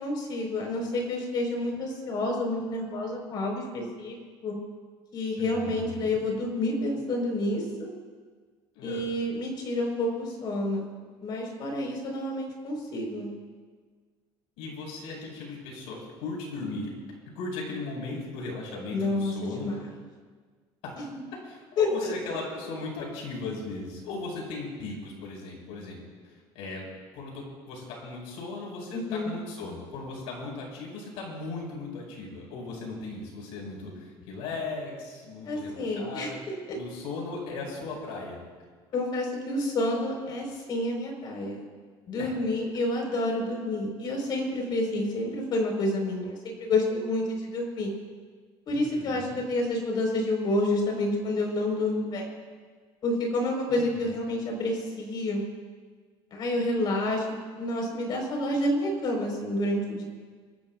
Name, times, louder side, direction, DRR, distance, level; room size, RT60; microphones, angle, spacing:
voice 1, 0.0-4.1 4.4-4.6 5.1-7.9 8.8-10.8 11.2-13.3 18.9-19.8 21.8-21.9 28.9-29.3 35.4-36.3 38.9-41.6 42.1-47.9 48.7-52.3 53.0-55.4 56.3-57.2 57.6-60.0, left 1 dB, 45° left, 1 dB, 4.5 m, -29 dB
voice 2, 5.4-6.2 8.7-9.1 14.6-16.9 17.4-19.7 20.8-20.9 21.4-26.9 27.1-36.4 36.8-38.4 42.2-42.3 48.7-49.4 53.7-54.2, left 3 dB, 85° left, -1 dB, 5.4 m, -37 dB
26.5 x 15.0 x 2.5 m, 1.5 s
cardioid pair, 145°, 10 cm